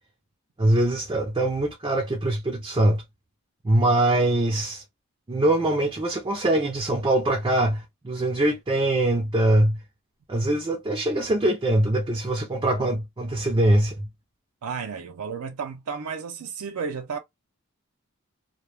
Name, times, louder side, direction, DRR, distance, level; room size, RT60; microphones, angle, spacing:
voice 1, 0.6-3.0 3.6-4.8 5.3-9.8 10.3-14.1, right 1 dB, 20° right, 0.4 m, -23 dB
voice 2, 14.6-17.2, right 6 dB, 90° right, 0.4 m, -32 dB
2.2 x 2.1 x 3.1 m
head